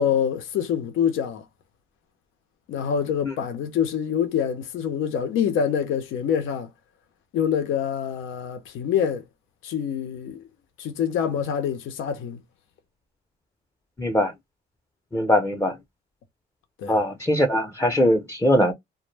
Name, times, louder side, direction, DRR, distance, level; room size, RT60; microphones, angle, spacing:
voice 1, 0.0-1.4 2.7-6.7 7.3-9.2 9.6-10.4 10.8-12.4 16.8-17.0, left 8 dB, 85° left, 0.6 m, -25 dB
voice 2, 14.0-14.3 15.1-15.7 16.9-18.7, equal, 15° left, 0.5 m, -21 dB
2.1 x 2.0 x 3.1 m
cardioid pair, 90°, 20 cm